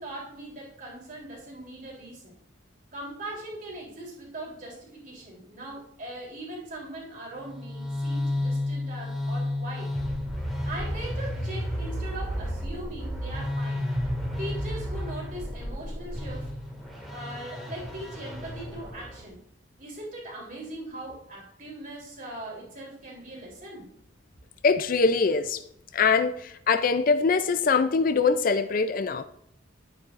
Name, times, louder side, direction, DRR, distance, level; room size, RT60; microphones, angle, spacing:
voice 1, 0.0-2.3 2.9-9.9 10.6-13.9 14.4-16.5 17.1-19.4 19.8-23.9, right 1 dB, 45° right, -3 dB, 3.4 m, -40 dB
sound 1, 7.4-19.2, left 1 dB, ahead, 1.9 m, -32 dB
voice 2, 24.6-25.6 25.9-29.2, left 4 dB, 45° left, 11 dB, 0.4 m, -23 dB
11.0 x 8.7 x 2.5 m, 0.71 s
head